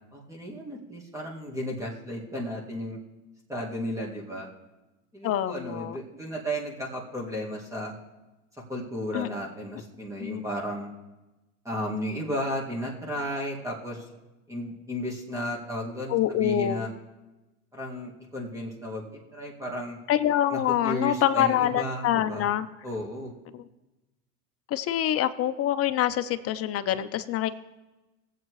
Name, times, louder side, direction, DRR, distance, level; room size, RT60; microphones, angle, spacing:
voice 1, 0.1-3.0 3.5-4.5 5.1-7.9 8.7-10.9 11.6-14.1 14.5-16.9 17.7-20.0 20.5-22.5 22.8-23.3, equal, 5° right, -2 dB, 2.2 m, -34 dB
voice 2, 5.2-6.0 9.1-9.3 10.2-10.4 16.1-16.8 20.1-22.7 23.5-23.6 24.7-27.5, left 11 dB, 35° left, 11 dB, 0.7 m, -25 dB
19.5 x 7.7 x 3.2 m, 1.1 s
supercardioid pair, 105°, 42 cm